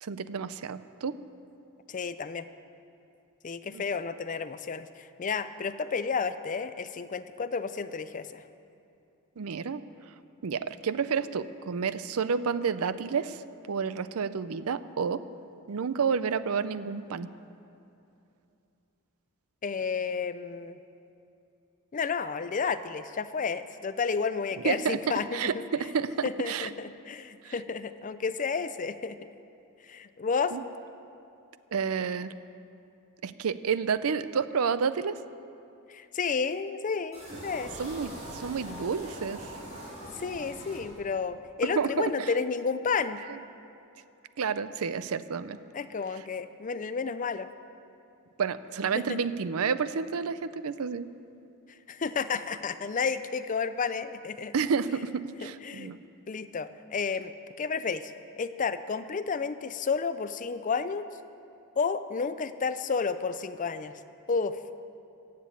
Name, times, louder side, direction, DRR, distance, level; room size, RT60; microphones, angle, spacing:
voice 1, 0.0-1.2 3.7-3.8 9.4-9.8 10.4-13.4 13.7-15.2 15.7-17.3 24.6-26.7 27.4-27.5 30.5-30.6 31.7-32.3 33.2-35.2 37.8-39.5 41.6-42.3 43.3-43.4 44.4-45.6 48.4-51.1 54.5-56.0, right 6 dB, 75° right, 14 dB, 0.5 m, -30 dB
voice 2, 1.9-2.5 3.4-8.4 19.6-20.8 21.9-25.6 26.2-29.2 29.9-30.5 35.9-37.7 40.2-43.2 45.7-47.5 48.9-49.2 51.9-54.5 55.4-55.9 56.3-58.1 58.4-61.1 61.8-63.9 64.3-64.7, left 5 dB, 35° left, 12 dB, 0.4 m, -31 dB
sound 1, 37.1-41.3, right 1 dB, 30° right, 3.7 m, -42 dB
15.5 x 7.6 x 8.5 m, 2.7 s
head